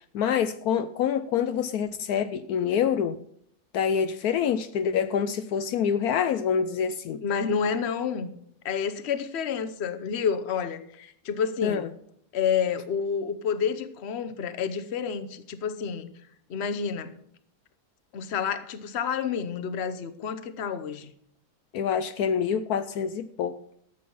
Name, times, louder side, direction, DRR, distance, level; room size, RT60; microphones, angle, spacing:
voice 1, 0.1-3.2 3.7-7.2 11.6-11.9 21.7-23.6, left 7 dB, 75° left, 1.1 m, -26 dB
voice 2, 7.2-8.3 8.6-11.9 12.3-16.1 16.5-17.1 18.1-21.1, left 7 dB, 50° left, 1.1 m, -29 dB
13.5 x 8.1 x 5.4 m
omnidirectional pair, 1.7 m